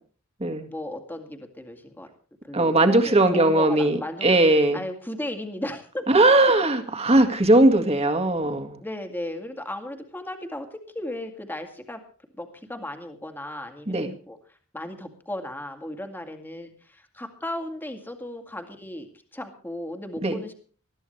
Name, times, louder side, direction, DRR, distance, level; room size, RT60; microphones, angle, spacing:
voice 1, 0.7-2.1 2.4-4.3 4.7-6.1 8.8-12.0 12.4-13.9 14.3-14.4 14.7-20.5, left 1 dB, 10° left, 5 dB, 2.1 m, -35 dB
voice 2, 2.5-4.8 6.1-8.8 13.9-14.2 20.2-20.4, right 2 dB, 30° right, 6 dB, 2.0 m, -19 dB
21.0 x 13.5 x 3.3 m, 0.42 s
head